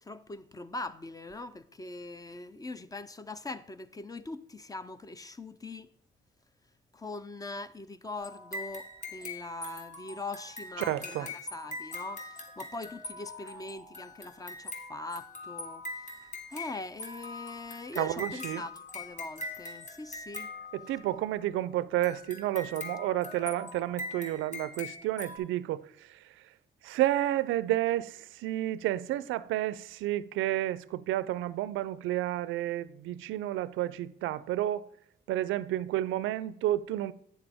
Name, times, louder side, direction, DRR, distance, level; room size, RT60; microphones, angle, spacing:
voice 1, 0.0-5.9 6.9-16.2 16.5-20.5, left 2 dB, 20° left, 0.5 m, -42 dB
sound 1, 8.2-21.3 22.0-25.4, left 2 dB, 40° left, 1.6 m, -42 dB
voice 2, 10.8-11.3 17.9-18.6 20.7-26.4 26.8-34.9 35.3-37.1, right 14 dB, 85° right, 0.4 m, -31 dB
9.1 x 6.9 x 3.5 m
cardioid pair, 90°, 20 cm